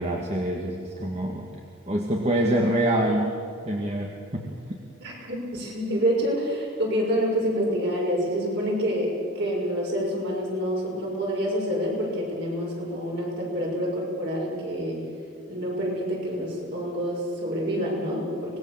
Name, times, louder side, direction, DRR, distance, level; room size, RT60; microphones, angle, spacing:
voice 1, 0.0-1.5 1.9-3.4 3.7-4.8, right 1 dB, 30° right, 0 dB, 1.9 m, -26 dB
voice 2, 5.0-15.0 15.5-18.6, equal, 50° right, -2 dB, 6.6 m, -27 dB
25.0 x 20.5 x 7.4 m, 2.4 s
head